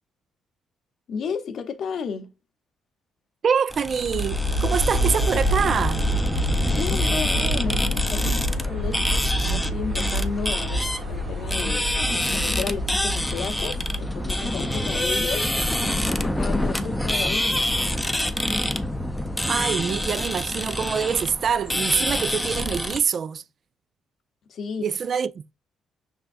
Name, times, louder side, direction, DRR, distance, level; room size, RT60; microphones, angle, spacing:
voice 1, 1.1-2.3 6.6-11.9 12.3-15.5 15.9-17.7 24.5-24.9, left 6 dB, 65° left, 0.8 m, -33 dB
voice 2, 3.4-6.0 19.4-23.4 24.8-25.5, right 7 dB, 55° right, 0.3 m, -25 dB
sound 1, 3.7-23.0, left 1 dB, 5° left, 0.5 m, -27 dB
Aircraft, 3.9-19.9, equal, 70° right, 1.4 m, -28 dB
5.5 x 3.5 x 2.5 m
cardioid pair, 90°, 0 cm